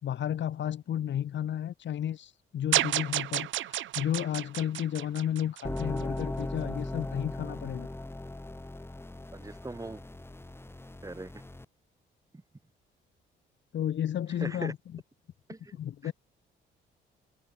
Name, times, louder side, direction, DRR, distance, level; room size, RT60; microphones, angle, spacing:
voice 1, 0.0-7.9 13.7-14.8 15.8-16.1, left 10 dB, 65° left, 7.2 m, -32 dB
sound 1, 2.7-6.0, right 13 dB, 75° right, 1.1 m, -31 dB
sound 2, 5.6-11.6, left 2 dB, 10° left, 4.2 m, -38 dB
voice 2, 9.3-10.0 11.0-11.3 14.4-14.7 15.5-16.1, right 2 dB, 15° right, 3.9 m, -40 dB
cardioid pair, 90°, 20 cm